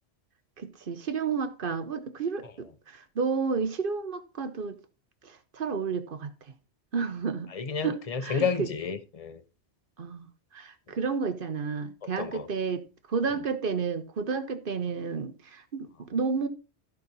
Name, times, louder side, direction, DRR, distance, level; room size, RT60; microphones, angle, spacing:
voice 1, 0.6-4.8 5.2-6.3 6.9-7.5 7.8-8.7 10.0-10.3 10.5-16.5, right 5 dB, 55° right, 1.0 m, -31 dB
voice 2, 7.5-9.4 12.2-12.5, left 5 dB, 35° left, 0.8 m, -31 dB
14.0 x 5.3 x 4.1 m
omnidirectional pair, 1.1 m